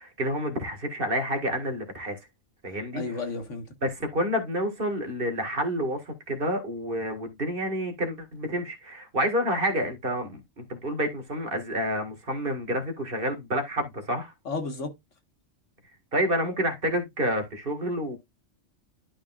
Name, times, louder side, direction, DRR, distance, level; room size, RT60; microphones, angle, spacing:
voice 1, 0.0-2.2 2.6-3.0 3.8-14.3 16.1-18.2, equal, 50° right, 2.0 m, -29 dB
voice 2, 2.9-3.7 14.5-14.9, left 3 dB, 90° left, 1.9 m, -32 dB
12.0 x 5.0 x 2.4 m
omnidirectional pair, 1.2 m